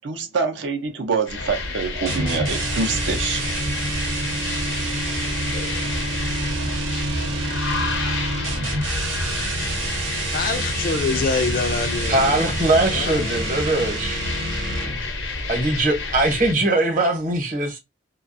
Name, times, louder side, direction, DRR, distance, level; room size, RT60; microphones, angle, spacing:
voice 1, 0.0-3.4, right 5 dB, 70° right, 0.5 m, -25 dB
sound 1, 1.3-16.5, left 3 dB, 85° left, 0.7 m, -29 dB
sound 2, 2.1-15.1, right 2 dB, 85° right, 0.9 m, -28 dB
voice 2, 10.3-13.5, left 4 dB, 45° left, 0.3 m, -26 dB
voice 3, 12.1-14.2 15.5-17.8, right 2 dB, 45° right, 0.9 m, -21 dB
2.4 x 2.3 x 2.5 m
head